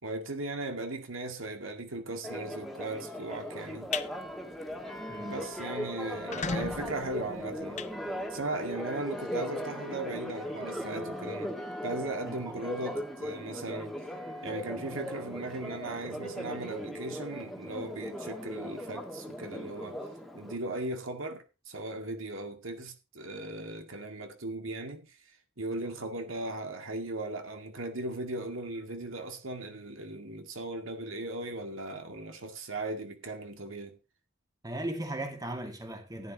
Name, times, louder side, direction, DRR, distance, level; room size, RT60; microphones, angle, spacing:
voice 1, 0.0-3.9 5.2-7.8 8.3-11.5 11.8-13.9 14.4-20.0 20.3-34.0, right 2 dB, 70° right, 2.1 m, -38 dB
Church bell, 2.2-20.6, equal, ahead, 1.9 m, -38 dB
sound 1, 3.6-4.1 4.5-4.8 5.1-5.2 5.5-5.6 6.1-8.6, left 5 dB, 35° left, 0.7 m, -37 dB
voice 2, 5.1-5.4 12.3-12.6 34.6-36.3, right 1 dB, 20° right, 2.3 m, -37 dB
16.0 x 10.5 x 3.0 m
head